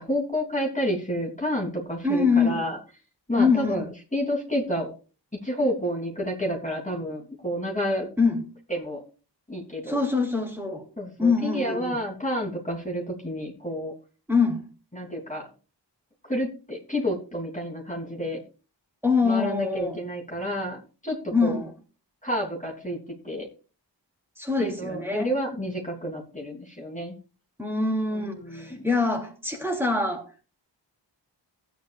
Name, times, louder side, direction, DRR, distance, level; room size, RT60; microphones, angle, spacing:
voice 1, 0.0-2.8 3.3-4.9 5.4-8.1 8.7-9.0 9.5-10.0 11.0-13.9 14.9-15.4 16.3-18.4 19.2-21.6 22.2-23.0 23.2-23.5 24.6-27.1 28.1-28.8, equal, 15° left, 3.2 m, -30 dB
voice 2, 2.0-2.6 3.4-3.8 8.2-8.5 9.9-10.8 11.2-12.0 14.3-14.6 19.0-20.0 21.3-21.7 24.4-25.3 27.6-30.3, left 4 dB, 5° right, 3.4 m, -24 dB
16.0 x 9.5 x 2.5 m
wide cardioid pair, 40°, 43 cm